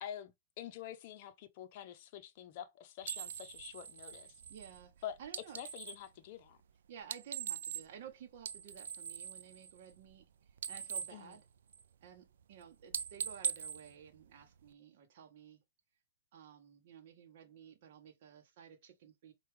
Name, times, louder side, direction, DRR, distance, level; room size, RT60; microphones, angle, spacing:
voice 1, 0.0-4.4 5.0-5.2 5.5-6.6 11.1-11.4, left 10 dB, 45° left, 0.6 m, -47 dB
sound 1, 3.0-6.1 7.0-8.1 8.4-10.2 10.5-12.1 12.4-12.6 12.9-14.7, right 8 dB, 70° right, 0.3 m, -42 dB
voice 2, 4.5-5.6 6.9-11.4 12.0-15.6 16.3-19.3, right 8 dB, 55° right, 0.7 m, -54 dB
4.4 x 2.3 x 3.3 m
hypercardioid pair, 135°, 0 cm